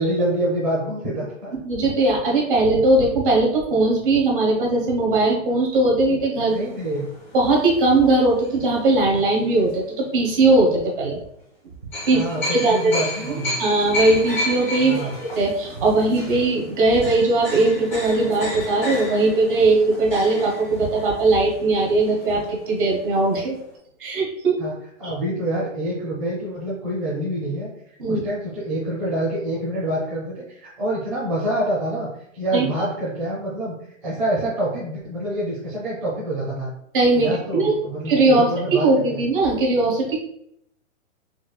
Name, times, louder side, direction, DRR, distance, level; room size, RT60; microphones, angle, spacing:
voice 1, 0.0-1.5 6.5-7.1 12.1-13.5 14.8-15.1 24.6-24.7 25.0-27.7 28.0-36.7 37.1-39.2, right 1 dB, 15° right, -9 dB, 0.7 m, -26 dB
voice 2, 1.6-6.5 7.3-11.2 12.1-12.2 12.5-12.9 13.2-13.3 13.6-23.6 24.0-24.6 28.0-28.2 32.5-32.7 36.9-37.7 38.1-38.5 38.8-40.2, right 2 dB, 40° right, -2 dB, 1.1 m, -19 dB
sound 1, 6.5-9.0 9.5-9.7 11.9-22.7 22.9-23.0 23.3-23.5, left 1 dB, 10° left, 0.4 m, -32 dB
4.6 x 2.5 x 2.3 m, 0.74 s
hypercardioid pair, 170°, 39 cm